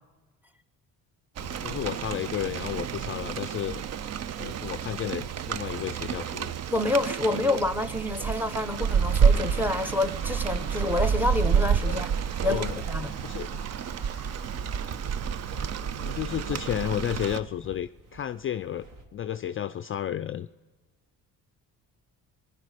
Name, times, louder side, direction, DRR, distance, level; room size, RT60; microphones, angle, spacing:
voice 1, 1.4-3.8 4.4-6.5 7.3-7.5 11.9-12.0 12.4-12.8 13.2-13.6 15.9-18.9 19.1-20.5, left 10 dB, 35° left, 12 dB, 0.4 m, -32 dB
Rain, 1.4-17.4, right 7 dB, 45° right, 0.5 m, -29 dB
voice 2, 6.7-12.1 12.4-13.1, left 2 dB, 5° right, 13 dB, 0.8 m, -28 dB
sound 1, 7.2-15.1, right 4 dB, 85° right, 1.8 m, -48 dB
sound 2, 10.5-19.0, right 1 dB, 65° right, 2.2 m, -48 dB
22.0 x 10.5 x 4.9 m, 1.3 s
cardioid pair, 90°, 36 cm